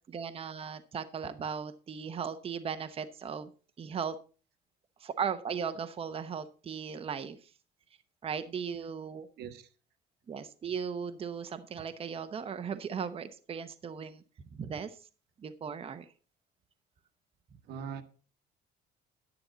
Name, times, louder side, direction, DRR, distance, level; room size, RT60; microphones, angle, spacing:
voice 1, 0.1-3.5 3.8-4.2 5.0-7.5 8.2-9.3 10.3-14.2 14.5-15.0 15.4-16.1, right 7 dB, 35° right, 0.8 m, -37 dB
voice 2, 9.4-9.7 17.7-18.0, right 7 dB, 75° right, 1.3 m, -40 dB
10.5 x 9.8 x 3.9 m
cardioid pair, 110°, 17 cm